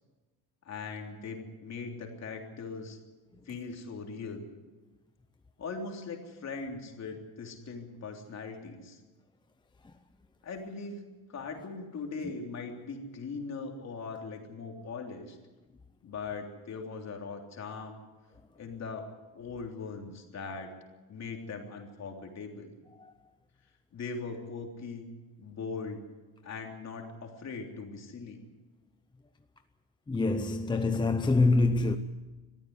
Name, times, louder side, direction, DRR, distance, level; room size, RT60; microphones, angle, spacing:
voice 1, 0.7-3.0 3.5-4.4 5.6-9.0 10.4-11.0 11.3-15.4 16.0-18.0 18.6-20.7 21.1-22.8 23.9-25.1 25.4-26.0 26.4-28.4, left 4 dB, 40° left, 3.4 m, -40 dB
voice 2, 30.1-32.0, left 3 dB, 10° left, 0.6 m, -25 dB
22.0 x 14.5 x 9.7 m
cardioid pair, 160°, 41 cm